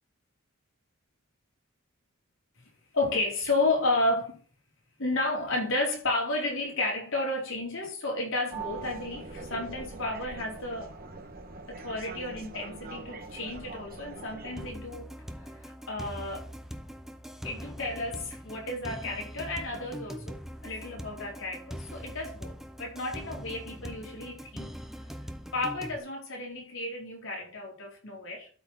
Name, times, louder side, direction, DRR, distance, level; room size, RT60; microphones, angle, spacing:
voice 1, 2.9-4.4 5.0-10.9 11.7-15.1 15.4-16.5 17.4-24.7 25.5-28.5, left 2 dB, 65° left, 4.4 m, -32 dB
sound 1, 8.5-14.7, right 3 dB, 45° right, 1.5 m, -42 dB
sound 2, 14.6-26.0, equal, ahead, 0.8 m, -42 dB
12.5 x 4.8 x 4.4 m
head